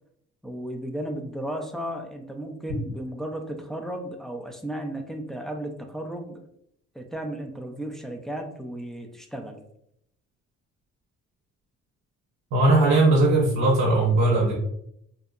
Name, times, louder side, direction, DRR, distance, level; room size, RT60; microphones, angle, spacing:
voice 1, 0.4-6.4 6.9-9.6, right 1 dB, ahead, 2 dB, 0.3 m, -34 dB
voice 2, 12.5-14.5, right 2 dB, 70° right, -2 dB, 0.6 m, -19 dB
2.7 x 2.1 x 2.3 m, 0.74 s
cardioid pair, 90°, 30 cm